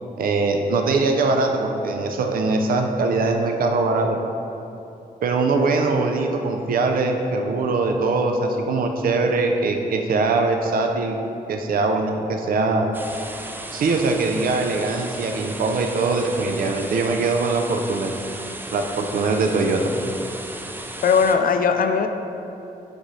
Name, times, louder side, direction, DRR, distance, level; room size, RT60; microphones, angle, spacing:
voice 1, 0.2-4.1 5.2-11.2 11.5-12.9 13.7-18.1 18.7-19.8, right 3 dB, 70° right, 4 dB, 0.5 m, -22 dB
sound 1, 12.9-21.3, right 2 dB, 15° right, 0.4 m, -35 dB
voice 2, 19.8-20.1 21.0-22.1, left 6 dB, 70° left, 7 dB, 0.4 m, -20 dB
6.3 x 5.2 x 3.1 m, 2.9 s
wide cardioid pair, 115°, 15 cm